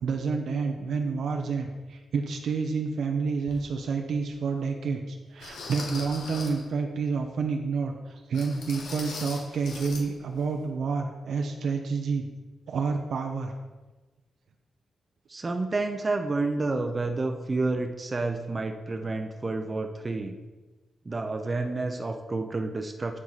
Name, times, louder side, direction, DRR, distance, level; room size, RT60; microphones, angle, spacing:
voice 1, 0.0-12.2 12.7-13.5, right 5 dB, 75° right, 3 dB, 0.7 m, -29 dB
sound 1, 3.5-3.6 4.3-4.4 5.4-6.7 8.3-10.1 10.3-10.5 10.9-11.0, left 3 dB, 90° left, 1.1 m, -40 dB
voice 2, 15.3-20.3 21.1-23.2, right 3 dB, 30° right, 4 dB, 0.6 m, -29 dB
9.6 x 4.6 x 4.0 m, 1.2 s
cardioid pair, 95°, 0 cm